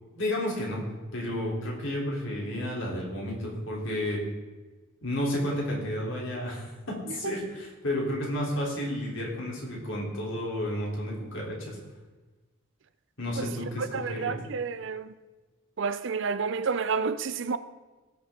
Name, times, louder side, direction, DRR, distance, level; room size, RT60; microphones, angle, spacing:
voice 1, 0.1-0.8 1.1-4.3 5.0-11.8 13.2-14.4, left 1 dB, 60° left, 3.5 m, -31 dB
voice 2, 13.8-15.1 15.8-17.6, right 5 dB, 60° right, 0.5 m, -30 dB
17.5 x 7.0 x 3.8 m
head